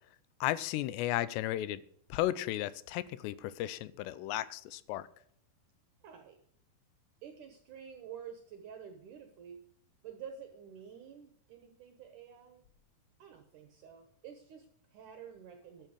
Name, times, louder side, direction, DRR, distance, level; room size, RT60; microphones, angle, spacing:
voice 1, 0.4-1.8 2.1-5.1, left 14 dB, 90° left, 2.8 m, -34 dB
voice 2, 6.0-6.4 7.2-9.6 10.0-12.6 13.2-15.9, right 8 dB, 75° right, 1.9 m, -49 dB
12.0 x 7.9 x 6.3 m
omnidirectional pair, 4.9 m